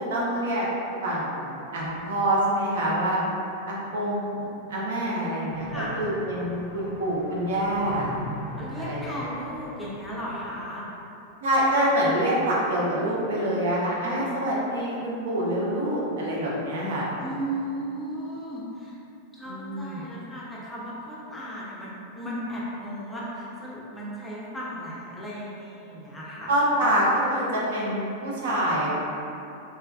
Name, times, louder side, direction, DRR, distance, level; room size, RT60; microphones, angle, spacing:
voice 1, 0.1-0.7 1.0-3.2 3.7-8.1 8.8-9.0 11.4-17.1 19.5-20.0 26.5-28.9, right 1 dB, 60° right, -5 dB, 0.7 m, -26 dB
sound 1, 5.5-10.6, left 1 dB, 30° right, 1.2 m, -40 dB
voice 2, 5.7-6.0 8.6-10.8 17.2-19.0 19.3-26.5 26.8-27.0, equal, 10° left, -7 dB, 0.5 m, -35 dB
3.3 x 3.0 x 2.2 m, 2.9 s
figure-of-eight pair, 90°, 0 cm